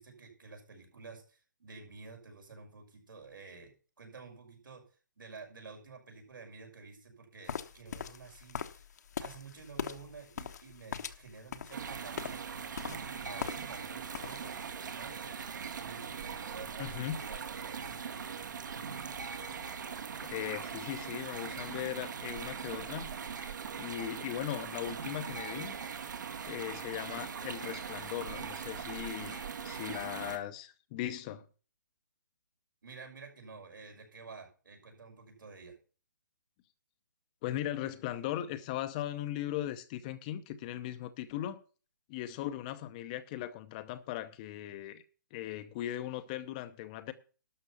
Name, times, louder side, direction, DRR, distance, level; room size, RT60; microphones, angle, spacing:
voice 1, 0.0-3.7 4.0-4.8 5.2-8.9 9.2-18.5 32.8-35.8, right 4 dB, 85° right, 5.9 m, -51 dB
sound 1, 7.5-13.9 14.1-14.6, left 7 dB, 55° left, 1.1 m, -41 dB
sound 2, 11.7-30.4, right 6 dB, 65° right, 1.8 m, -41 dB
voice 2, 16.8-17.2 19.8-25.7 26.5-31.5 37.4-41.6 42.1-45.0 45.3-47.1, left 12 dB, 25° left, 0.7 m, -39 dB
12.5 x 6.4 x 7.0 m
hypercardioid pair, 155°, 11 cm